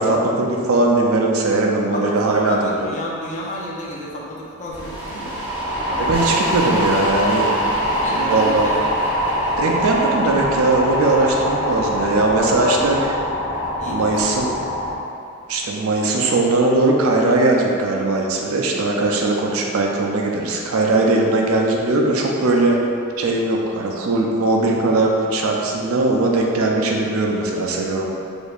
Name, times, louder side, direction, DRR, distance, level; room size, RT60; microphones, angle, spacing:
voice 1, 0.0-2.9 6.0-7.5 8.2-8.6 9.6-13.0 13.9-14.5 15.5-22.8 23.2-28.0, right 2 dB, 80° right, 0 dB, 0.5 m, -19 dB
voice 2, 1.9-5.4 7.8-8.9 12.6-13.1 13.8-14.2, left 1 dB, 35° left, -4 dB, 0.5 m, -31 dB
sound 1, 4.7-14.9, equal, 10° right, 0.8 m, -23 dB
4.4 x 2.6 x 2.4 m, 2.5 s
head